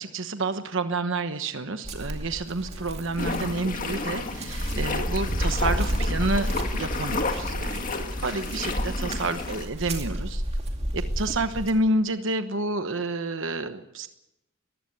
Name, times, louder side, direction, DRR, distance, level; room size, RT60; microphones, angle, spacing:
voice 1, 0.0-6.5 6.7-7.9 8.2-10.4 10.9-14.1, right 2 dB, 60° right, 9 dB, 1.1 m, -29 dB
sound 1, 1.8-11.7, equal, 30° right, 2.4 m, -32 dB
sound 2, 3.2-9.7, left 2 dB, 40° left, 1.9 m, -30 dB
21.5 x 15.0 x 8.0 m, 0.88 s
head